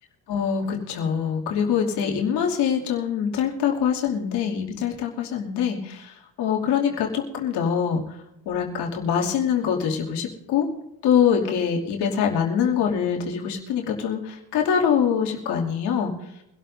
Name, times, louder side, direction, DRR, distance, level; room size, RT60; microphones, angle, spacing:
voice 1, 0.3-8.2 8.4-10.7 11.0-16.1, left 7 dB, 85° left, -1 dB, 2.8 m, -24 dB
24.5 x 12.5 x 2.7 m, 0.84 s
cardioid pair, 95°, 40 cm